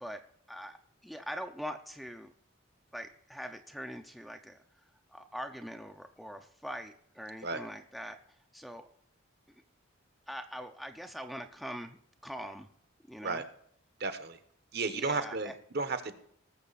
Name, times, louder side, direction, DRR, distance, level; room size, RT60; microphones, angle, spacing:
voice 1, 0.0-2.3 2.9-4.8 5.1-8.9 9.5-9.6 10.3-12.0 12.2-12.7 13.0-13.4 14.9-15.5, equal, ahead, 6 dB, 0.6 m, -43 dB
voice 2, 14.0-14.4 14.7-16.2, right 3 dB, 50° right, 10 dB, 1.1 m, -33 dB
19.5 x 7.2 x 4.1 m, 0.67 s
head